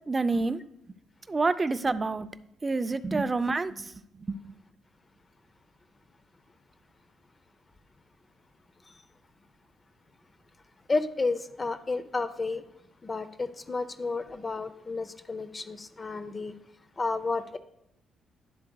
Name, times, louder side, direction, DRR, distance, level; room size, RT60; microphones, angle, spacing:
voice 1, 0.1-0.6 1.3-2.3 2.6-4.5, right 3 dB, 25° right, 0.4 m, -28 dB
voice 2, 10.9-12.6 13.0-16.6 17.0-17.6, left 3 dB, 30° left, 0.5 m, -31 dB
10.5 x 7.5 x 2.3 m
cardioid pair, 90°, 0 cm